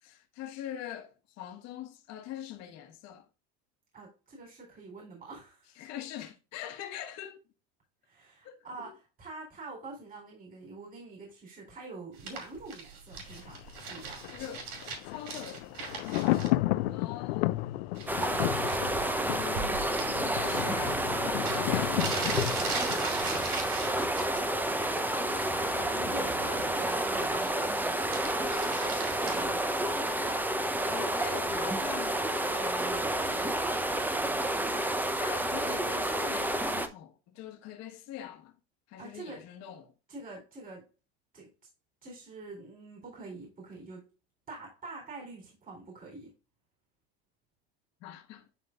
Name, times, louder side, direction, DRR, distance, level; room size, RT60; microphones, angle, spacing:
voice 1, 0.0-3.3 5.7-7.4 8.4-8.9 14.3-14.7 15.0-15.8 16.9-17.7 18.5-20.0 20.3-22.3 25.2-26.6 29.2-29.6 30.9-32.3 35.2-38.5 38.9-39.9 48.0-48.5, left 11 dB, 60° left, 1.5 m, -43 dB
voice 2, 3.9-5.7 8.0-14.2 16.1-17.1 26.1-28.5 29.2-29.6 32.5-33.6 39.0-39.4 40.1-40.9 41.3-41.5 42.0-44.1 44.5-46.3, right 3 dB, 30° right, 3.7 m, -45 dB
sound 1, 12.2-16.5 17.9-18.4 18.7-20.1 21.1-21.2 21.4-24.4 24.8-25.2 25.5-27.7 28.0-29.5, right 5 dB, 85° right, 2.5 m, -39 dB
Thunder, 13.2-24.1 24.4-24.5, left 18 dB, 80° left, 0.5 m, -33 dB
sound 2, 18.1-36.9, right 1 dB, 5° right, 0.7 m, -30 dB
11.0 x 3.7 x 2.5 m
supercardioid pair, 110°, 31 cm